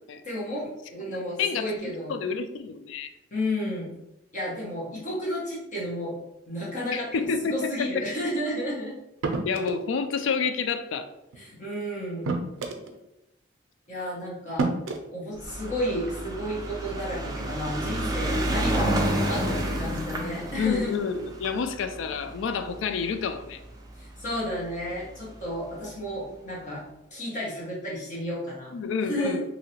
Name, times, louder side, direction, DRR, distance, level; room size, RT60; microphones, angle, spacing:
voice 1, 0.2-2.2 3.3-3.9 4.3-6.2 6.5-7.1 7.5-8.9 11.4-12.3 13.9-14.7 15.1-20.9 24.0-26.8 27.1-28.7 29.0-29.4, equal, 40° left, -6 dB, 1.1 m, -32 dB
voice 2, 2.1-3.1 6.9-7.7 9.5-11.1 20.6-23.6 28.7-29.4, left 5 dB, 70° left, 8 dB, 0.3 m, -28 dB
sound 1, 9.2-9.9 11.3-11.5 12.2-12.9 14.0-14.1 14.6-15.0, right 3 dB, 85° right, 0.5 m, -28 dB
sound 2, 15.4-23.9 24.7-24.8 25.0-25.1 25.3-25.4, right 1 dB, 20° right, 0.4 m, -30 dB
2.9 x 2.7 x 2.8 m, 0.90 s
head